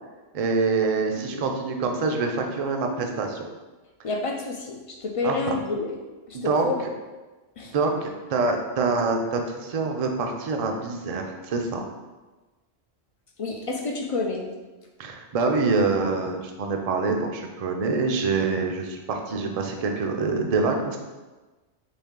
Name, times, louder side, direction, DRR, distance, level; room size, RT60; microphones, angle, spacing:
voice 1, 0.3-3.4 5.2-5.6 6.3-6.7 7.7-11.8 15.0-21.0, right 4 dB, 50° right, 3 dB, 0.5 m, -25 dB
voice 2, 1.2-1.5 4.0-6.0 6.3-6.9 7.6-7.7 13.4-14.5, left 3 dB, 55° left, 1 dB, 0.3 m, -29 dB
4.3 x 3.2 x 3.6 m, 1.2 s
omnidirectional pair, 1.1 m